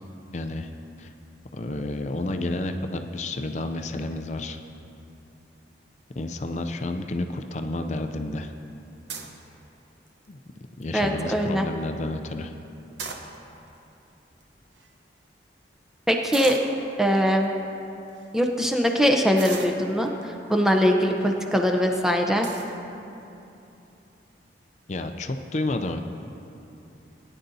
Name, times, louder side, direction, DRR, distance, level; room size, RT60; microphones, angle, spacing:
voice 1, 0.3-0.7 1.0-1.1 1.5-4.6 6.2-8.5 10.3-10.4 10.8-12.5 24.9-26.0, left 2 dB, 40° left, 6 dB, 0.4 m, -30 dB
sound 1, 9.1-9.4 10.1-10.4 10.8-10.9 11.1-11.5 12.8-13.7 14.4-14.5 14.7-14.9 16.3-16.7 17.4-17.5 18.1-18.3 19.4-20.2 21.0-21.3 21.8-21.9 22.4-22.8, right 5 dB, 85° right, 0.9 m, -37 dB
voice 2, 10.9-11.7 16.1-16.6 17.0-17.5 18.3-20.1 20.5-22.5, equal, 5° right, 2 dB, 0.7 m, -22 dB
18.0 x 10.0 x 2.7 m, 2.8 s
head